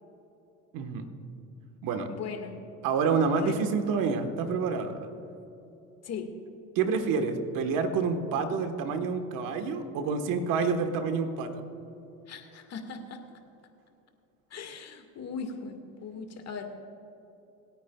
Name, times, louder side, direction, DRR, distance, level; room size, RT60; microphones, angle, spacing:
voice 1, 0.7-1.1 1.8-2.1 2.8-5.1 6.7-11.6, right 5 dB, 70° right, 7 dB, 1.4 m, -28 dB
voice 2, 2.1-2.6 3.3-3.5 6.0-6.3 12.3-13.2 14.5-16.7, left 5 dB, 50° left, 5 dB, 1.8 m, -39 dB
27.0 x 9.3 x 2.3 m, 2.9 s
supercardioid pair, 85°, 34 cm